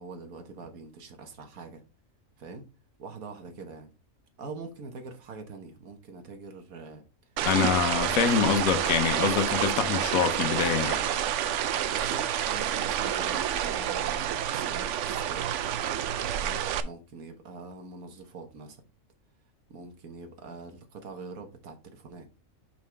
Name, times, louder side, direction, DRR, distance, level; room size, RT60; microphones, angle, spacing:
voice 1, 0.0-1.8 2.4-2.7 3.0-3.9 4.4-7.0 11.8-15.5 16.4-18.8 19.7-22.3, right 4 dB, 90° right, 1.6 m, -44 dB
voice 2, 7.4-11.0, left 7 dB, 75° left, 1.2 m, -25 dB
sound 1, 7.4-16.8, right 10 dB, 65° right, 0.8 m, -28 dB
5.7 x 5.5 x 3.4 m
omnidirectional pair, 1.5 m